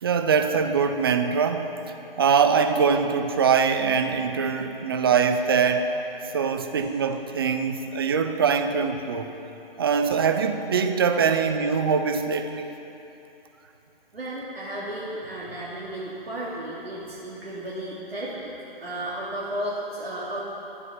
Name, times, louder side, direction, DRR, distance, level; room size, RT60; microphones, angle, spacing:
voice 1, 0.0-5.9 6.3-9.3 9.8-12.7, right 6 dB, 25° right, 7 dB, 0.5 m, -23 dB
voice 2, 14.1-18.5 18.8-20.5, right 1 dB, 85° right, -8 dB, 2.7 m, -33 dB
13.0 x 9.1 x 5.9 m, 2.9 s
figure-of-eight pair, 145°, 29 cm